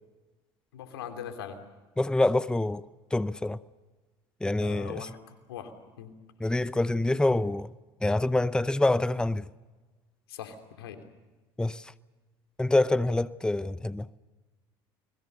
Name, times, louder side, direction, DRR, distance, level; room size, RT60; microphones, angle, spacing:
voice 1, 0.7-1.6 4.6-6.1 10.3-11.0, left 8 dB, 90° left, 3.0 m, -41 dB
voice 2, 2.0-2.8 3.1-3.6 4.4-5.1 6.4-7.7 8.0-9.4 11.6-11.8 12.6-14.1, left 2 dB, 5° left, 0.7 m, -26 dB
29.5 x 21.5 x 6.7 m
hypercardioid pair, 75°, 12 cm